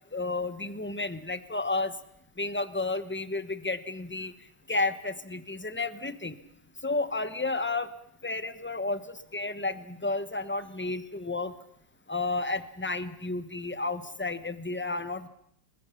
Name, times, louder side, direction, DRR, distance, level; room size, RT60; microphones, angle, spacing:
voice 1, 0.1-1.9 2.4-4.3 4.7-6.4 6.8-7.9 8.2-11.5 12.1-15.3, left 3 dB, 10° left, 12 dB, 0.7 m, -32 dB
30.0 x 21.0 x 5.8 m, 0.73 s
omnidirectional pair, 2.0 m